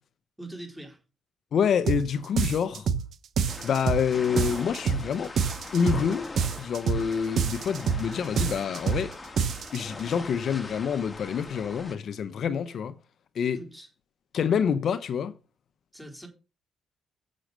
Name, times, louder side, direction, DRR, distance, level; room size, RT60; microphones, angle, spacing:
voice 1, 0.4-1.0 13.6-13.9 15.9-16.3, right 1 dB, 5° right, 4.0 m, -42 dB
voice 2, 1.5-2.9 3.6-5.3 5.7-6.3 6.6-9.2 9.7-12.9 13.3-13.6 14.3-15.3, left 7 dB, 60° left, 0.7 m, -27 dB
sound 1, 1.9-2.1 2.4-3.1 3.4-4.1 4.4-5.1 5.4-6.1 6.4-7.1 7.4-8.1 8.4-9.1 9.4-9.8, right 6 dB, 65° right, 1.0 m, -26 dB
sound 2, 3.5-11.9, left 3 dB, 25° left, 1.6 m, -41 dB
7.2 x 6.3 x 6.6 m
cardioid pair, 90°, 0 cm